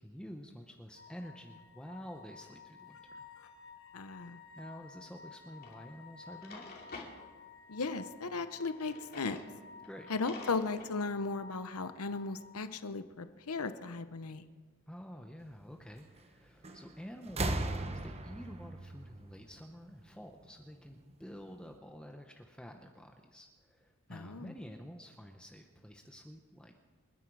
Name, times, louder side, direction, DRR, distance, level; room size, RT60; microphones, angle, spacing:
voice 1, 0.0-3.0 4.6-6.7 9.8-10.1 14.9-26.7, equal, 5° left, 3 dB, 0.8 m, -49 dB
sound 1, 1.0-12.6, left 4 dB, 60° left, 1.0 m, -54 dB
voice 2, 3.9-4.4 7.7-9.4 10.1-14.4 24.1-24.5, left 3 dB, 85° left, 11 dB, 0.9 m, -36 dB
Drawer open or close, 5.6-5.8 6.3-7.1 8.7-9.5 9.8-9.9 10.2-10.9, left 3 dB, 45° left, 2.8 m, -48 dB
sound 2, 16.6-16.9 17.2-20.0 21.1-21.2, right 2 dB, 30° right, 1.0 m, -37 dB
28.0 x 10.0 x 4.8 m, 1.5 s
head